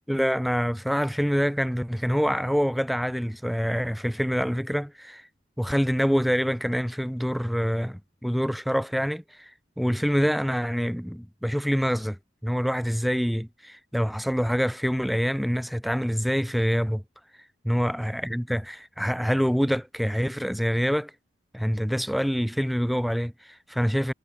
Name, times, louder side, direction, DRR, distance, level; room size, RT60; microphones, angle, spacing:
voice 1, 0.1-5.3 5.6-9.5 9.8-12.2 12.4-17.0 17.6-21.1 21.5-24.1, equal, ahead, 0.3 m, -26 dB
head